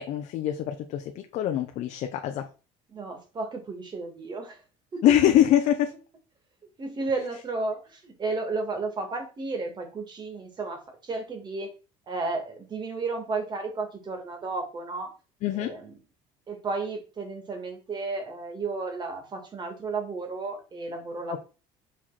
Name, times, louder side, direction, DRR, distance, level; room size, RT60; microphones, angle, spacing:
voice 1, 0.0-2.5 5.0-5.9 15.4-15.7, left 11 dB, 65° left, 0.9 m, -24 dB
voice 2, 2.9-4.6 4.9-5.0 6.8-11.7 12.1-15.1 15.5-15.9 16.5-21.4, right 3 dB, 35° right, 2.6 m, -33 dB
5.8 x 4.9 x 4.3 m
cardioid pair, 110°, 13 cm